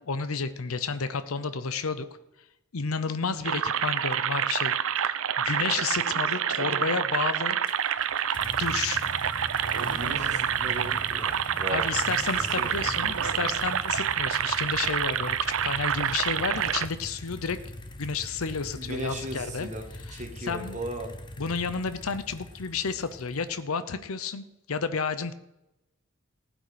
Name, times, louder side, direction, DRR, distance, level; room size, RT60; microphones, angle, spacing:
voice 1, 0.1-2.1 2.7-7.6 8.5-9.1 11.7-17.6 18.0-19.7 20.1-20.8 21.4-25.3, left 5 dB, 75° left, 12 dB, 0.7 m, -31 dB
sound 1, 3.4-16.9, right 9 dB, 65° right, 0.6 m, -27 dB
sound 2, 7.7-23.6, left 1 dB, 20° left, 0.9 m, -42 dB
voice 2, 9.8-11.8 12.4-12.7 18.7-19.8 20.1-21.1, right 1 dB, 35° right, 4 dB, 1.7 m, -37 dB
15.5 x 9.2 x 5.1 m, 0.92 s
head